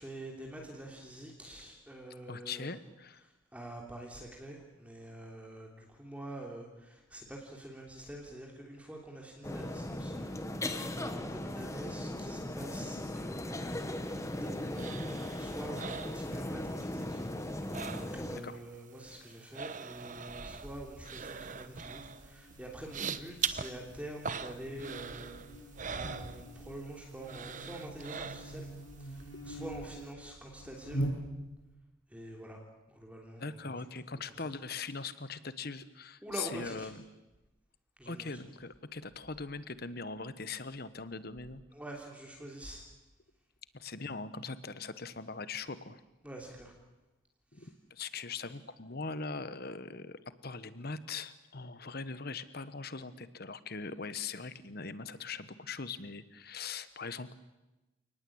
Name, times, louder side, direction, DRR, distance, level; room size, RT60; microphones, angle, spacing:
voice 1, 0.0-2.7 3.1-25.4 25.9-28.7 29.0-31.1 32.1-32.6 32.9-33.8 34.1-34.5 36.2-36.9 38.0-38.4 41.7-42.8 46.2-46.7 47.6-47.7, right 1 dB, 5° right, -1 dB, 3.2 m, -46 dB
voice 2, 2.3-3.2 18.4-18.6 33.4-37.0 38.1-41.6 43.7-46.0 47.5-57.3, left 4 dB, 50° left, 14 dB, 1.2 m, -41 dB
sound 1, 9.4-18.4, left 1 dB, 15° left, 1.4 m, -38 dB
sound 2, 13.8-16.9 17.1-18.5 18.7-26.9 27.2-28.8 29.2-29.3, right 6 dB, 40° right, 1.0 m, -42 dB
Buzz, 20.3-31.7, right 1 dB, 75° left, 6.0 m, -44 dB
29.5 x 19.5 x 8.7 m, 1.1 s
head